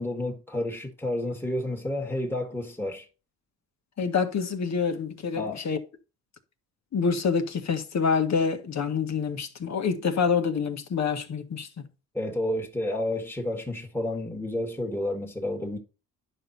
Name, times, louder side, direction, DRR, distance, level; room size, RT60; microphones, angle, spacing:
voice 1, 0.0-3.1 5.4-5.6 12.1-15.8, left 1 dB, 5° left, 1.9 m, -30 dB
voice 2, 4.0-5.8 6.9-11.8, left 5 dB, 50° left, 1.7 m, -27 dB
11.0 x 5.6 x 4.2 m
cardioid pair, 100°, 34 cm